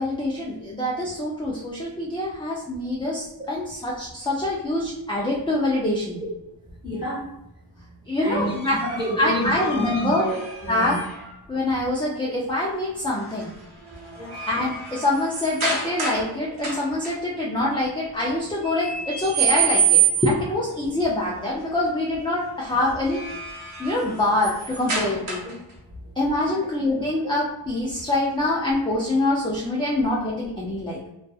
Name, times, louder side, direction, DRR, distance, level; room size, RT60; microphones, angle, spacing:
voice 1, 0.0-6.2 8.1-8.8 9.2-10.3 10.7-11.0 11.5-13.5 14.5-23.2 23.8-25.4 26.2-31.1, left 1 dB, 10° left, -5 dB, 0.3 m, -25 dB
voice 2, 6.8-7.2 8.2-11.0 14.2-14.3 25.4-25.6, right 1 dB, 10° right, -6 dB, 1.0 m, -29 dB
sound 1, 8.4-11.3 13.1-13.5 13.9-16.3 16.6-17.1 18.6-20.5 22.8-25.7, right 7 dB, 75° right, 0.9 m, -27 dB
2.6 x 2.4 x 2.3 m, 0.89 s
wide cardioid pair, 65°, 49 cm